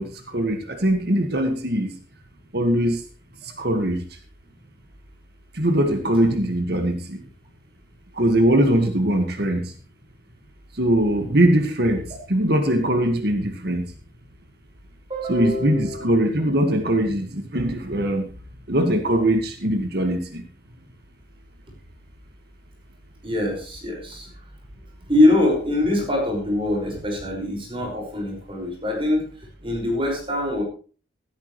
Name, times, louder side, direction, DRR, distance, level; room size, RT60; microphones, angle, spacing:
voice 1, 0.0-2.0 2.5-3.0 3.4-4.2 5.5-7.2 8.1-9.7 10.7-13.9 15.3-18.3 18.7-20.4, right 1 dB, 55° right, 5 dB, 1.8 m, -21 dB
voice 2, 15.1-16.0 23.2-24.3 25.1-29.3 29.6-30.6, left 1 dB, 30° right, 1 dB, 5.5 m, -23 dB
16.0 x 13.5 x 3.2 m, 0.37 s
head